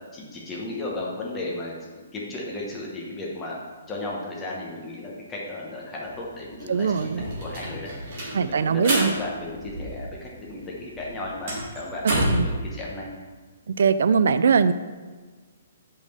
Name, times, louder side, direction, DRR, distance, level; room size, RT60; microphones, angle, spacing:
voice 1, 0.1-1.8 2.1-3.6 3.9-7.9 8.4-13.1, left 2 dB, 10° left, -4 dB, 1.0 m, -34 dB
sound 1, 6.0-6.1 6.4-10.3 10.6-12.5, right 1 dB, 35° right, 1.9 m, -29 dB
voice 2, 6.7-7.3 8.3-9.1 12.3-12.5 13.7-14.7, right 6 dB, 60° right, 13 dB, 0.3 m, -21 dB
5.4 x 4.9 x 6.4 m, 1.4 s
hypercardioid pair, 180°, 0 cm